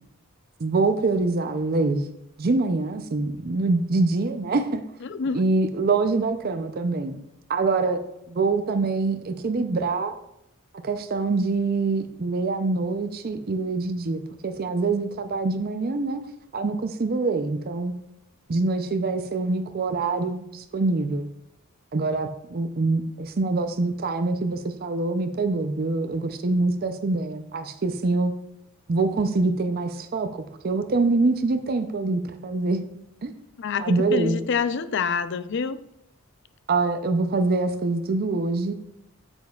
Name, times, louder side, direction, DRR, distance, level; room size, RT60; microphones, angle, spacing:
voice 1, 0.6-2.0 2.4-4.8 5.3-7.2 7.5-10.1 10.8-16.2 16.5-17.9 18.5-21.3 21.9-28.3 28.9-32.8 33.2-33.3 33.8-34.4 36.7-38.7, right 3 dB, 45° right, 7 dB, 0.5 m, -25 dB
voice 2, 5.0-5.4 33.6-35.8, left 5 dB, 55° left, 13 dB, 0.4 m, -27 dB
9.3 x 7.0 x 2.3 m, 0.81 s
head